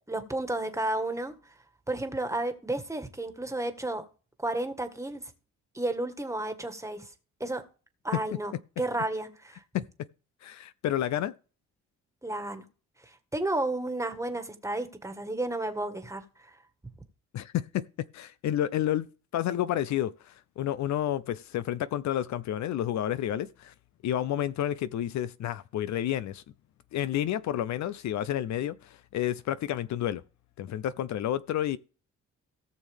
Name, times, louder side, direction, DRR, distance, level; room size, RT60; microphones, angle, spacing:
voice 1, 0.1-1.4 1.9-4.0 4.4-5.3 5.7-7.1 7.4-7.6 8.0-8.5 8.8-9.6 12.2-12.6 13.0-16.5, right 2 dB, 10° right, 1.6 m, -32 dB
voice 2, 9.7-10.1 10.4-11.3 17.3-17.9 18.1-19.1 19.3-23.7 24.0-26.4 26.9-30.2 30.6-31.8, left 11 dB, 70° left, 0.6 m, -30 dB
18.0 x 6.3 x 3.5 m
cardioid pair, 90°, 30 cm